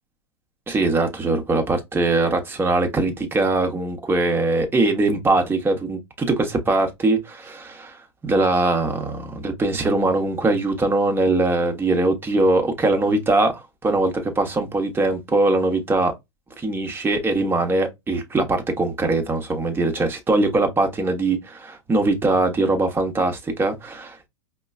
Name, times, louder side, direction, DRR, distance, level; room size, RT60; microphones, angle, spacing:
voice 1, 0.7-8.0 8.2-13.5 13.8-16.1 16.6-24.3, right 2 dB, 15° right, 1.0 m, -21 dB
5.0 x 2.2 x 2.4 m
hypercardioid pair, 100°, 15 cm